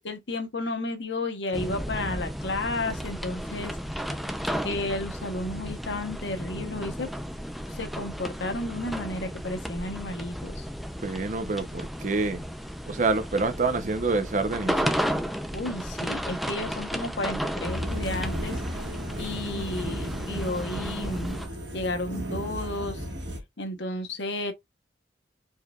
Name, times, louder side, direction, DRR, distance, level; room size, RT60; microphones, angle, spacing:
voice 1, 0.0-3.8 4.6-7.1 7.7-10.7 15.5-18.8 19.2-21.4 21.7-23.0 23.6-24.5, left 2 dB, 85° left, 1.0 m, -32 dB
sound 1, 1.5-21.5, equal, ahead, 0.4 m, -34 dB
voice 2, 11.0-12.4 12.9-15.0, right 3 dB, 45° right, 0.7 m, -27 dB
sound 2, 17.6-23.4, equal, 80° right, 1.7 m, -34 dB
4.7 x 3.3 x 2.3 m
head